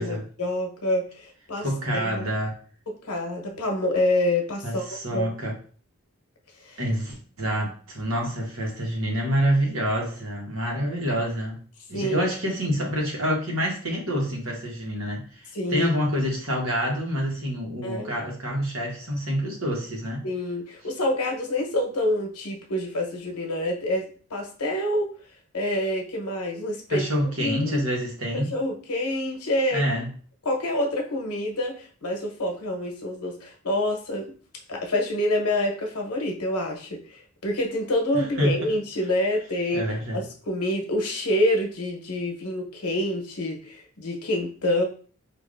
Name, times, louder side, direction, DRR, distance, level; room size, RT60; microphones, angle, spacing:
voice 1, 0.0-1.7 1.9-2.3 3.0-4.8 5.1-5.3 6.6-6.8 11.9-12.3 15.5-15.9 17.8-18.2 20.2-25.1 25.5-27.1 27.4-27.8 28.3-29.8 30.4-34.3 34.7-39.9 40.1-44.8, left 1 dB, 90° left, 2 dB, 1.0 m, -27 dB
voice 2, 1.6-2.6 4.6-5.5 6.8-11.6 11.9-20.2 26.9-28.5 29.7-30.1 38.1-38.5 39.7-40.2, equal, 70° right, -1 dB, 1.2 m, -27 dB
4.8 x 2.5 x 2.5 m, 0.42 s
head